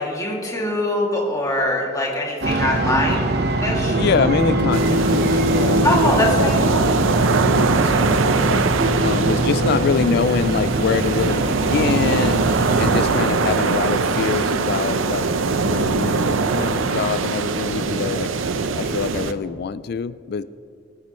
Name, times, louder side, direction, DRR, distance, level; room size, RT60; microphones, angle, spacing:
voice 1, 0.0-3.3 3.6-4.0 5.8-6.6, left 1 dB, 15° left, -3 dB, 2.4 m, -22 dB
sound 1, 2.4-13.0, right 1 dB, 55° right, 1.0 m, -22 dB
voice 2, 3.9-8.6 9.0-12.5 12.8-15.3 15.6-18.3 18.8-20.4, left 6 dB, 55° left, 15 dB, 0.3 m, -25 dB
sound 2, 4.7-19.3, right 4 dB, 85° right, 0.6 m, -22 dB
25.0 x 9.6 x 3.1 m, 2.5 s
head